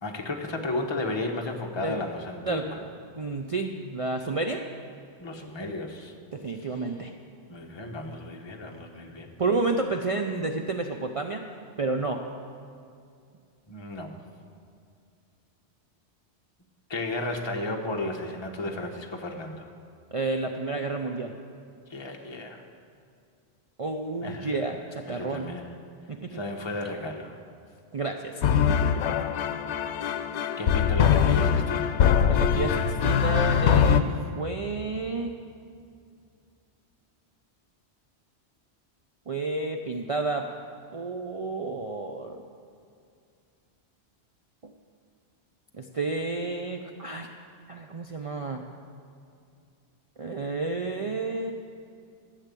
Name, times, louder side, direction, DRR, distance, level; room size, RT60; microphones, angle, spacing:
voice 1, 0.0-2.8 5.2-6.1 7.5-9.3 13.7-14.2 16.9-19.7 21.9-22.6 24.2-24.5 25.0-25.7 26.3-27.3 30.6-32.0, left 2 dB, 25° left, 2 dB, 1.0 m, -33 dB
voice 2, 3.2-4.6 6.3-7.1 9.4-11.4 11.8-12.2 20.1-21.3 23.8-25.6 26.1-26.4 27.9-28.4 28.7-28.9 32.2-34.0 34.4-35.3 39.3-40.5 40.9-42.4 45.7-47.3 47.7-48.6 50.2-51.5, right 3 dB, 40° right, 3 dB, 0.5 m, -30 dB
sound 1, 28.4-34.0, left 8 dB, 85° left, 0.9 m, -22 dB
13.0 x 6.5 x 8.3 m, 2.3 s
omnidirectional pair, 1.1 m